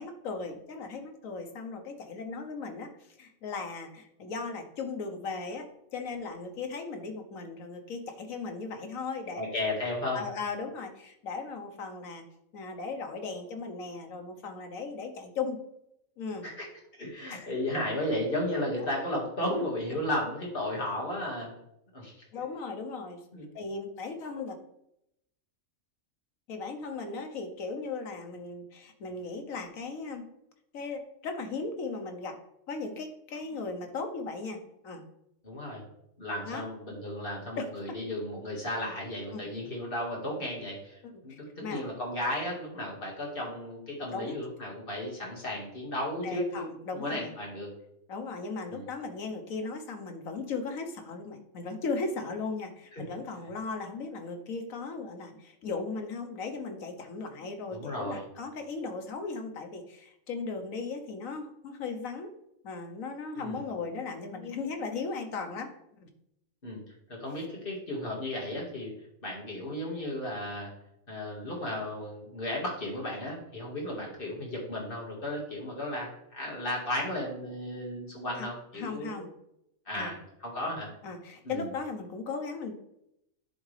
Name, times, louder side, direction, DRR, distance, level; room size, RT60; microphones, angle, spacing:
voice 1, 0.0-2.9 3.2-9.4 10.1-12.2 12.5-15.6 16.2-16.4 17.3-17.5 22.3-23.2 23.5-24.6 26.5-30.2 30.7-32.4 32.7-34.6 34.8-35.0 36.5-36.7 37.6-37.7 39.3-39.5 41.1-41.8 44.1-44.4 46.2-47.3 48.1-62.3 62.6-65.7 66.0-66.1 78.4-78.5 78.7-79.3 80.0-80.1 81.0-82.7, left 4 dB, 80° left, 5 dB, 1.3 m, -37 dB
voice 2, 9.3-10.2 16.4-16.7 17.0-21.5 21.9-22.1 23.3-23.5 35.4-35.8 36.2-46.7 46.9-47.7 48.7-48.9 52.9-53.1 57.7-58.3 63.4-63.6 66.6-66.8 67.1-68.9 69.2-70.7 71.1-79.3 79.9-80.9 81.4-81.7, left 1 dB, 40° left, -2 dB, 2.0 m, -34 dB
10.5 x 3.6 x 3.3 m, 0.79 s
omnidirectional pair, 1.4 m